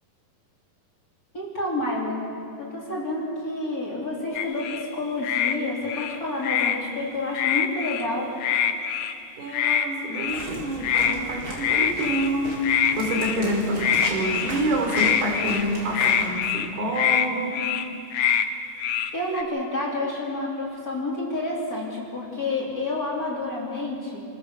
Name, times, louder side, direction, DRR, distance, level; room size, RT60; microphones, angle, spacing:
voice 1, 1.3-2.2 2.6-8.3 19.1-24.2, left 2 dB, 25° left, -5 dB, 3.3 m, -29 dB
sound 1, 4.4-4.8 5.2-5.6 5.9-6.8 7.3-8.1 8.4-9.1 9.5-9.9 10.1-10.4 10.8-11.2 11.6-12.3 12.6-13.5 13.8-14.5 14.9-15.6 15.9-16.7 16.9-17.3 17.5-17.9 18.1-18.5 18.8-19.4, left 9 dB, 75° left, 2.5 m, -24 dB
voice 2, 9.4-17.6, right 1 dB, 85° right, 1 dB, 5.2 m, -27 dB
sound 2, 10.3-16.3, right 1 dB, 35° right, 4.4 m, -36 dB
28.0 x 15.0 x 6.9 m, 2.5 s
omnidirectional pair, 4.3 m